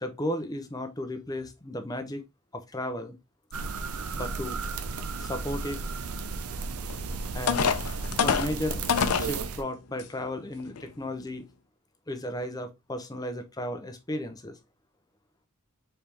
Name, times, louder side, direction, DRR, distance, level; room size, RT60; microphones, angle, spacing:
voice 1, 0.0-2.2 2.5-3.2 4.1-4.6 5.2-5.8 7.3-7.7 8.2-8.8 9.2-11.4 12.1-14.6, left 1 dB, 15° left, 0.7 m, -34 dB
sound 1, 3.5-9.6, right 4 dB, 85° right, 0.6 m, -34 dB
sound 2, 6.9-7.0 7.5-9.3 10.0-10.1 10.6-10.8, left 7 dB, 85° left, 0.6 m, -25 dB
4.5 x 3.4 x 3.4 m
head